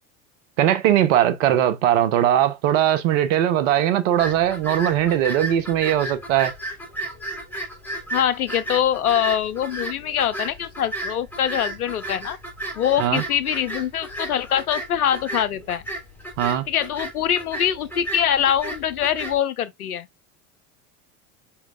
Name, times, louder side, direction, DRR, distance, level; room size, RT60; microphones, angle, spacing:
voice 1, 0.6-6.5 13.0-13.2 16.4-16.7, right 11 dB, 60° right, 0.9 m, -20 dB
sound 1, 4.2-19.4, right 1 dB, 5° left, 2.9 m, -34 dB
voice 2, 8.1-12.4 12.8-15.8 16.7-20.1, left 9 dB, 85° left, 0.6 m, -23 dB
4.7 x 4.4 x 2.4 m
hypercardioid pair, 80°, 43 cm